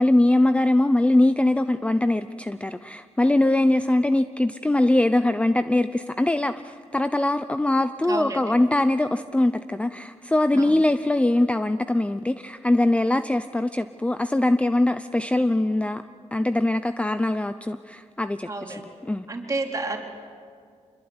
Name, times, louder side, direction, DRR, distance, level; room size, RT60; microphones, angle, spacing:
voice 1, 0.0-16.0 16.3-18.8 19.0-19.3, left 1 dB, 10° left, 11 dB, 0.6 m, -22 dB
voice 2, 8.1-8.5 10.5-10.7 18.5-18.8 19.3-20.0, right 2 dB, 25° right, 1 dB, 4.0 m, -30 dB
26.5 x 22.0 x 9.7 m, 2.1 s
wide cardioid pair, 110°, 12 cm